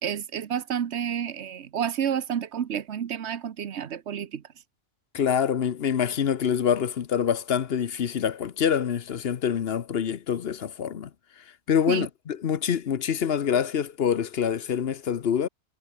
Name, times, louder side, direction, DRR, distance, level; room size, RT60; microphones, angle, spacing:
voice 1, 0.0-4.4 11.9-12.1, right 8 dB, 70° right, 1.2 m, -30 dB
voice 2, 5.1-11.1 11.7-15.5, left 8 dB, 60° left, 1.0 m, -26 dB
omnidirectional pair, 1.2 m